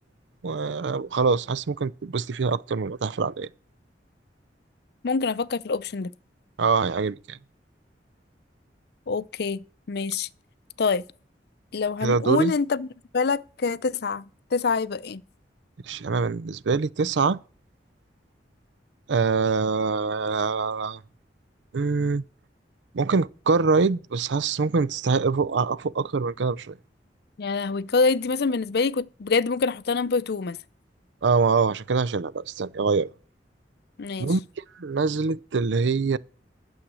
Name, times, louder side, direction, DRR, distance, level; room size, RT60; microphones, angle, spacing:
voice 1, 0.4-3.5 6.6-7.4 12.0-12.5 15.8-17.4 19.1-21.0 21.7-22.2 22.9-26.8 31.2-33.1 34.2-34.4 34.8-36.2, right 4 dB, 90° right, 0.5 m, -24 dB
voice 2, 5.0-6.1 9.1-10.3 10.8-11.0 11.7-12.9 13.1-14.2 14.5-15.2 27.4-30.6 34.0-34.3, left 4 dB, 60° left, 0.5 m, -25 dB
11.5 x 7.2 x 6.2 m
head